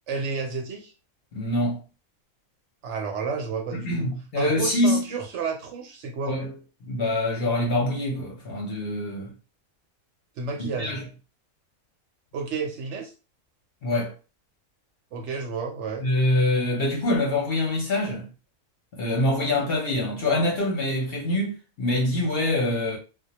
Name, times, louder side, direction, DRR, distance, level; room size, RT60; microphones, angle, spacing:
voice 1, 0.1-0.9 2.8-4.1 4.4-6.3 10.4-11.0 12.3-13.1 15.1-16.1, right 5 dB, 65° right, 0.8 m, -31 dB
voice 2, 1.3-1.8 3.7-5.1 6.3-6.5 6.8-9.3 10.6-11.0 13.8-14.1 16.0-18.3 18.9-23.0, left 1 dB, 55° left, 0.8 m, -25 dB
2.2 x 2.1 x 2.8 m
omnidirectional pair, 1.4 m